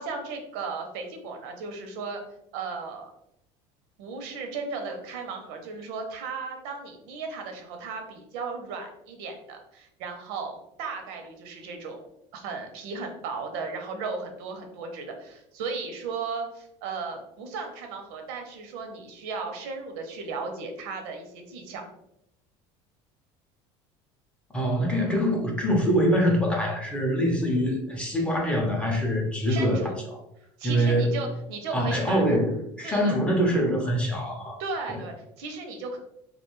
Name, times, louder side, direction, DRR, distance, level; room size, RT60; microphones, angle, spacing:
voice 1, 0.0-2.2 2.5-3.1 4.0-12.1 12.3-21.8 29.5-30.0 30.6-32.2 32.8-33.2 34.6-36.0, right 4 dB, 85° right, 4 dB, 0.6 m, -35 dB
voice 2, 24.5-29.8 30.6-31.2 31.7-34.6, equal, 10° left, -1 dB, 0.5 m, -24 dB
2.4 x 2.2 x 3.0 m, 0.78 s
cardioid pair, 150°, 12 cm